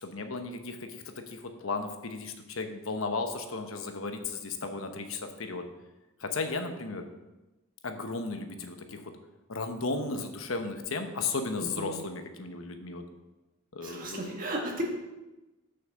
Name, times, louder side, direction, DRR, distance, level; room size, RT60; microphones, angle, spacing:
voice 1, 0.0-5.7 6.2-7.1 7.8-9.1 9.5-13.1 13.7-14.3, left 3 dB, 85° left, 6 dB, 1.0 m, -35 dB
voice 2, 11.6-12.0 13.8-14.8, right 1 dB, 40° right, 0 dB, 1.7 m, -35 dB
6.5 x 5.8 x 7.0 m, 1.1 s
head